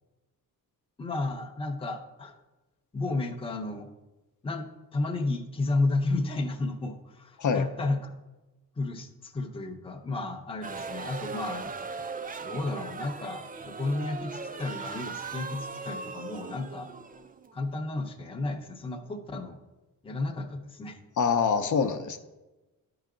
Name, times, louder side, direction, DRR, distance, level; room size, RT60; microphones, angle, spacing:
voice 1, 1.0-2.4 2.9-3.9 4.4-8.1 8.8-11.7 12.4-16.9 17.5-19.6 20.0-21.0, left 2 dB, 15° left, 4 dB, 0.7 m, -32 dB
sound 1, 10.6-17.8, right 4 dB, 25° right, 0.4 m, -39 dB
voice 2, 21.2-22.2, left 6 dB, 55° left, 7 dB, 0.7 m, -25 dB
12.5 x 4.8 x 3.8 m, 1.1 s
wide cardioid pair, 145°, 36 cm